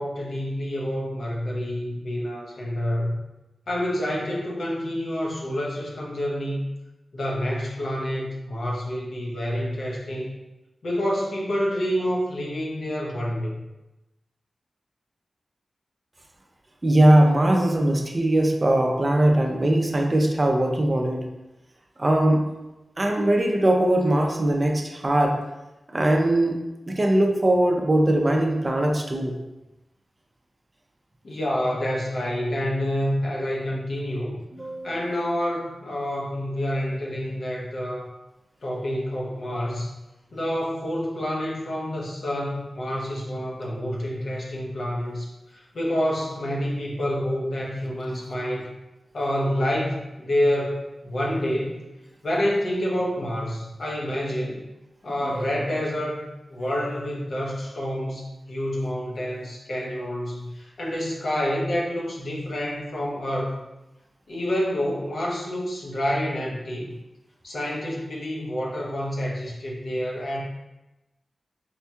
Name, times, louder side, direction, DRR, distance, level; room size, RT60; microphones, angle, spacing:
voice 1, 0.0-3.2 3.7-6.6 7.1-10.3 10.8-13.5 31.2-34.4 34.8-38.1 38.6-40.0 40.3-48.7 49.1-51.8 52.2-54.7 55.0-63.6 64.3-67.0 67.4-70.4, equal, 70° left, -3 dB, 0.7 m, -28 dB
voice 2, 16.8-21.3 22.0-22.4 23.0-25.4 25.9-26.6 26.9-29.4 34.5-35.0 55.1-55.5, right 1 dB, 30° right, 1 dB, 0.4 m, -20 dB
4.3 x 2.7 x 2.2 m, 1.0 s
wide cardioid pair, 105°, 0 cm